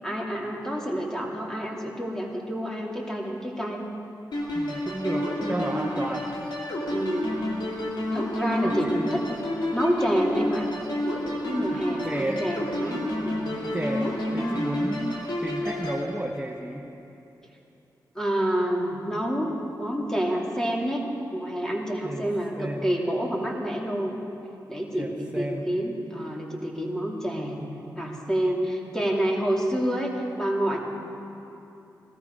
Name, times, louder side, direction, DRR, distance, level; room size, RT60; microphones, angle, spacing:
voice 1, 0.0-3.9 5.4-6.2 6.9-7.4 8.1-9.2 9.7-10.7 11.0-13.6 18.1-24.1 24.7-27.6 28.0-30.8, equal, 5° left, -1 dB, 2.8 m, -28 dB
sound 1, 4.3-16.0, left 1 dB, 70° left, 2.6 m, -30 dB
voice 2, 4.5-6.3 8.6-9.2 12.0-12.4 13.7-16.9 22.0-22.3 22.6-22.8 25.0-25.7, right 1 dB, 15° right, 0 dB, 1.1 m, -32 dB
17.5 x 13.5 x 5.3 m, 2.9 s
cardioid pair, 50°, 8 cm